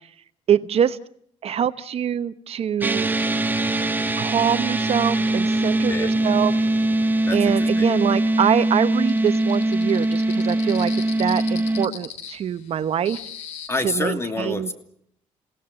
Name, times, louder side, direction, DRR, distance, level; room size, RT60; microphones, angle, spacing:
voice 1, 0.5-1.0 1.4-3.1 4.2-6.5 7.3-10.9 11.2-13.2 13.8-14.7, right 9 dB, 55° right, 13 dB, 0.9 m, -24 dB
sound 1, 2.8-11.9, right 2 dB, 15° right, 1.3 m, -22 dB
voice 2, 5.9-6.2 7.3-7.9 13.7-14.7, left 2 dB, 20° left, 7 dB, 2.6 m, -28 dB
sound 2, 9.1-13.7, left 9 dB, 90° left, 3.3 m, -38 dB
28.5 x 17.5 x 7.8 m, 0.70 s
cardioid pair, 95°, 12 cm